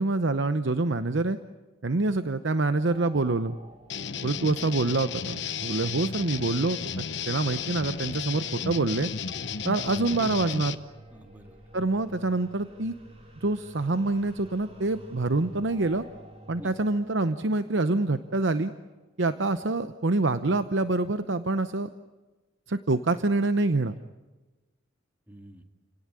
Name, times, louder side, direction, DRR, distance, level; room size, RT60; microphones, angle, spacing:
voice 1, 0.0-1.4 1.8-3.6 4.2-9.1 9.6-10.8 11.7-12.9 13.4-16.0 16.5-18.7 19.2-21.9 22.7-23.9, right 2 dB, 65° right, 10 dB, 0.8 m, -26 dB
sound 1, 2.6-18.9, right 1 dB, 30° right, 3.9 m, -51 dB
sound 2, 3.9-10.7, left 6 dB, 60° left, 1.0 m, -34 dB
voice 2, 10.1-10.8 11.1-11.9 16.6-16.7 25.3-25.6, right 1 dB, 10° right, 4 dB, 2.2 m, -46 dB
29.5 x 18.0 x 9.8 m, 1.2 s
head